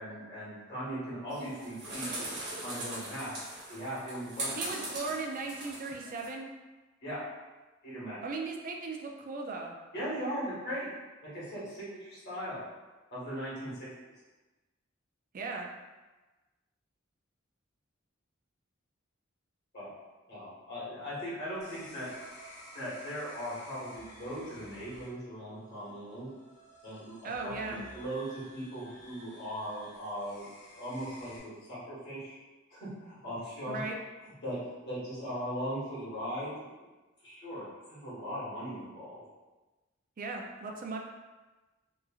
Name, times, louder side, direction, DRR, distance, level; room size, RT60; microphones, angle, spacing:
voice 1, 0.0-2.1 2.6-3.3 3.7-4.8 7.0-7.2 7.8-8.2 9.9-10.9 11.3-12.6 13.1-13.9 19.7-19.9 20.3-22.1 22.7-26.3 26.8-27.2 27.4-30.5 30.7-32.3 32.7-33.8 34.4-34.6 34.9-36.5 37.2-39.2, equal, 60° left, -9 dB, 1.3 m, -39 dB
sound 1, 1.3-6.3, right 1 dB, 60° right, 0.9 m, -40 dB
voice 2, 4.6-6.5 8.2-9.8 15.3-15.7 27.2-27.9 33.7-34.0 40.2-41.0, right 3 dB, 45° right, 1 dB, 0.4 m, -37 dB
sound 2, 21.6-31.4, equal, 40° left, 0.8 m, -52 dB
3.0 x 2.4 x 2.3 m, 1.2 s
head